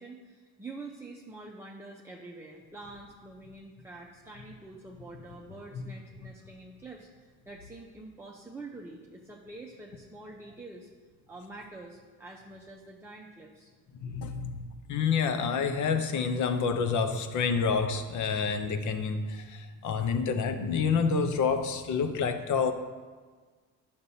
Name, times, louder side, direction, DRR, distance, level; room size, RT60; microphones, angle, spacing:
voice 1, 0.0-10.9 11.3-13.7, right 2 dB, 5° right, -2 dB, 0.7 m, -46 dB
voice 2, 14.0-22.7, left 5 dB, 60° left, 8 dB, 0.8 m, -28 dB
10.5 x 6.8 x 2.8 m, 1.4 s
cardioid pair, 110°, 33 cm